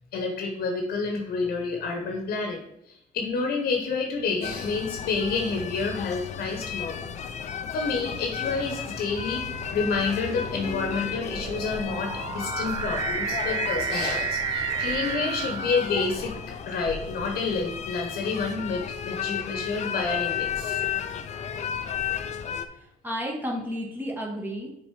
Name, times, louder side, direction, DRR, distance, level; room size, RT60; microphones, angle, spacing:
voice 1, 0.1-7.0 7.7-9.4 9.7-16.3 16.7-20.8, left 4 dB, 65° left, 2 dB, 1.1 m, -29 dB
sound 1, 4.4-22.7, left 8 dB, 45° left, 0.5 m, -33 dB
sound 2, 7.0-7.4 8.2-16.5, right 7 dB, 25° right, 0.6 m, -33 dB
voice 2, 22.7-24.7, equal, 10° right, -1 dB, 1.6 m, -32 dB
6.6 x 4.0 x 4.8 m, 0.80 s
cardioid pair, 110°, 17 cm